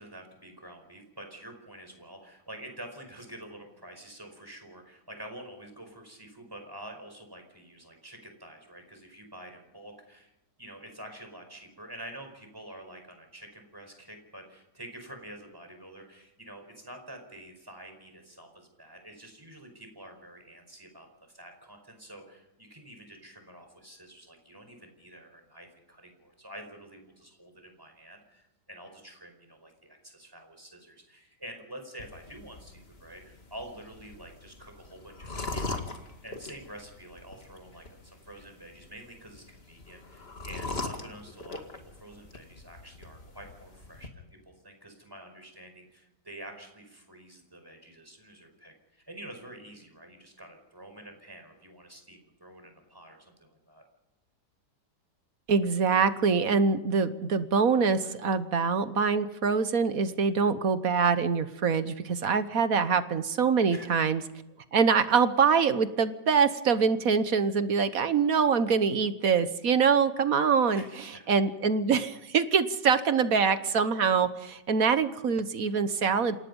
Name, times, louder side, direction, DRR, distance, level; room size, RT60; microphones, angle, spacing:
voice 1, 0.0-10.3 10.6-35.9 36.2-53.8 63.7-63.9 70.7-71.3, right 1 dB, 10° right, 4 dB, 5.0 m, -48 dB
sound 1, 32.0-44.1, left 3 dB, 35° left, 2.3 m, -41 dB
voice 2, 55.5-64.2 64.7-70.8 71.3-76.4, right 5 dB, 60° right, 12 dB, 1.5 m, -24 dB
27.5 x 18.5 x 5.4 m, 0.96 s
omnidirectional pair, 1.8 m